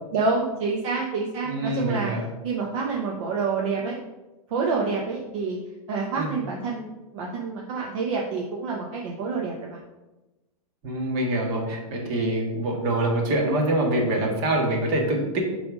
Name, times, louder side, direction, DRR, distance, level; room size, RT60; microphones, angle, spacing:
voice 1, 0.1-2.1 2.4-4.0 4.5-5.6 5.9-9.8, right 4 dB, 55° right, -1 dB, 1.0 m, -28 dB
voice 2, 1.4-2.3 6.2-6.4 10.8-15.4, right 1 dB, 35° right, 0 dB, 1.7 m, -25 dB
7.7 x 3.4 x 5.0 m, 1.1 s
hypercardioid pair, 145°, 20 cm